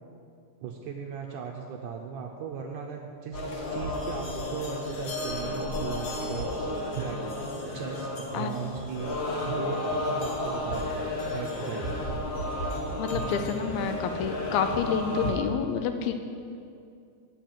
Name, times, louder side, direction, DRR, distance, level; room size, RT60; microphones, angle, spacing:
voice 1, 0.6-3.4 3.7-7.2 7.7-9.2 9.4-11.9, right 6 dB, 80° right, 1 dB, 1.9 m, -37 dB
sound 1, 3.3-15.3, left 1 dB, 55° left, 1.8 m, -32 dB
voice 2, 13.0-16.1, left 7 dB, 85° left, 7 dB, 2.5 m, -29 dB
9.0 x 7.0 x 7.7 m, 2.4 s
omnidirectional pair, 4.3 m